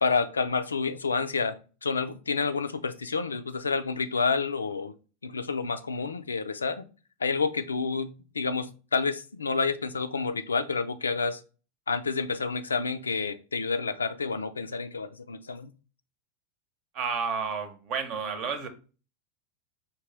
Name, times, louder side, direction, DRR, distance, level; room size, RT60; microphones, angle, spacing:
voice 1, 0.0-4.9 5.2-6.8 7.2-11.4 11.9-15.7, left 4 dB, 85° left, 0.3 m, -29 dB
voice 2, 16.9-18.7, right 5 dB, 50° right, 0.9 m, -31 dB
4.9 x 2.8 x 3.2 m
hypercardioid pair, 90°, 0 cm